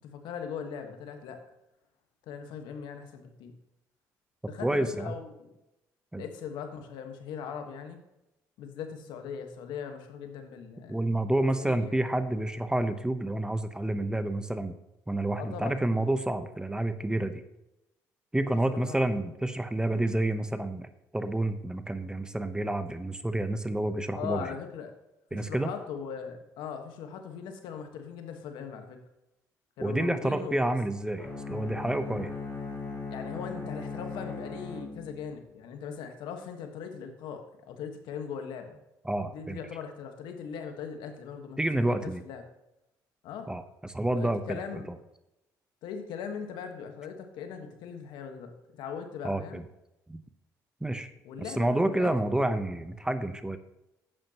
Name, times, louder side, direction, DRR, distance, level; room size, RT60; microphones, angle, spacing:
voice 1, 0.0-1.4 2.3-3.5 4.5-5.5 6.1-8.0 8.6-11.0 11.6-12.0 15.3-16.1 18.7-19.0 24.2-24.9 25.3-29.0 29.8-30.6 33.1-38.8 39.2-42.4 43.2-43.5 44.1-44.9 45.8-48.5 48.8-49.6 51.2-52.1, left 7 dB, 80° left, 6 dB, 1.4 m, -40 dB
voice 2, 4.6-5.2 6.1-6.2 10.9-14.7 15.1-17.4 18.3-20.9 21.1-24.5 25.3-25.7 29.8-32.3 39.0-39.6 41.6-42.2 43.5-44.6 44.9-45.0 49.2-49.6 50.1-50.2 50.8-51.1 51.4-53.6, right 1 dB, 10° right, 10 dB, 0.8 m, -29 dB
Bowed string instrument, 31.2-35.4, left 4 dB, 30° left, 2.8 m, -38 dB
11.0 x 8.9 x 2.9 m, 0.90 s
supercardioid pair, 80°, 8 cm